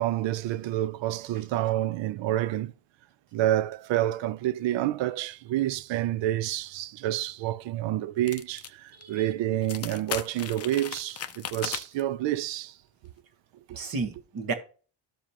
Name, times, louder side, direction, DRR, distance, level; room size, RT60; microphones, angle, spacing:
voice 1, 0.0-2.7 3.3-12.7 13.7-13.8, right 13 dB, 65° right, 0.5 m, -28 dB
sound 1, 8.3-8.7 9.0-9.1 9.6-12.0, left 9 dB, 30° left, 0.5 m, -36 dB
voice 2, 8.9-9.3 13.7-14.5, right 4 dB, 45° right, 1.4 m, -33 dB
13.0 x 4.9 x 2.9 m
cardioid pair, 140°, 49 cm